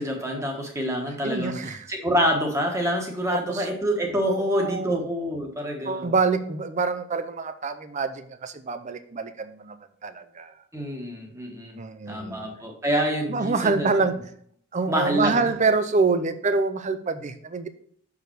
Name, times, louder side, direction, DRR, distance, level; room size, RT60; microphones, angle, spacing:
voice 1, 0.0-6.1 10.7-11.8 12.1-14.1 14.9-15.5, equal, 15° right, 1 dB, 1.3 m, -27 dB
voice 2, 1.2-1.9 3.3-3.7 4.3-5.0 5.9-9.8 10.0-10.5 11.8-12.4 13.3-14.2 14.7-17.7, right 4 dB, 30° right, 11 dB, 0.5 m, -26 dB
6.6 x 4.8 x 4.6 m, 0.63 s
head